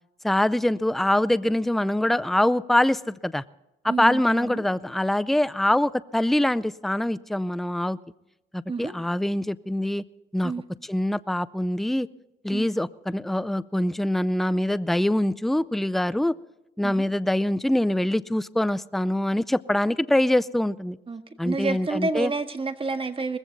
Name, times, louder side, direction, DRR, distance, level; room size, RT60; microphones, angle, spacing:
voice 1, 0.2-3.4 3.8-8.0 8.5-10.0 10.3-10.5 10.9-12.1 12.4-16.3 16.8-21.0 21.4-22.3, left 1 dB, ahead, 17 dB, 0.5 m, -24 dB
voice 2, 3.8-4.6 8.7-8.9 10.4-10.6 12.5-12.7 16.8-17.0 21.1-23.4, right 3 dB, 25° right, 8 dB, 1.7 m, -29 dB
20.0 x 15.5 x 4.0 m, 0.91 s
cardioid pair, 90°, 20 cm